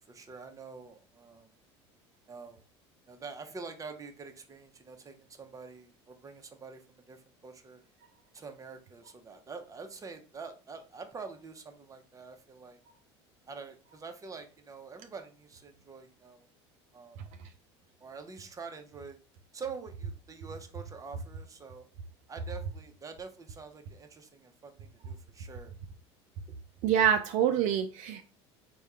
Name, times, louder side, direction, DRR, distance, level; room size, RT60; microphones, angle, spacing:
voice 1, 0.1-1.5 2.3-2.6 3.1-7.8 8.3-12.8 13.5-16.5 16.9-17.2 18.0-19.2 19.5-21.9 22.3-25.7, right 5 dB, 25° right, 0.8 m, -46 dB
voice 2, 26.8-28.2, right 9 dB, 60° right, 0.5 m, -26 dB
3.5 x 2.3 x 4.2 m
hypercardioid pair, 80°, 14 cm